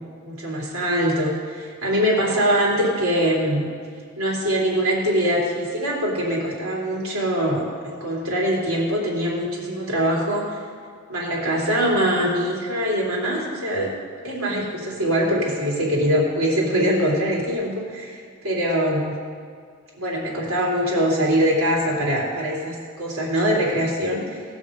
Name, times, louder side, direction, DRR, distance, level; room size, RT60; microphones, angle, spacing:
voice 1, 0.2-3.7 4.1-10.6 11.1-13.9 14.2-19.2 19.9-24.4, equal, 75° right, -4 dB, 3.4 m, -23 dB
18.5 x 6.4 x 5.3 m, 2.1 s
head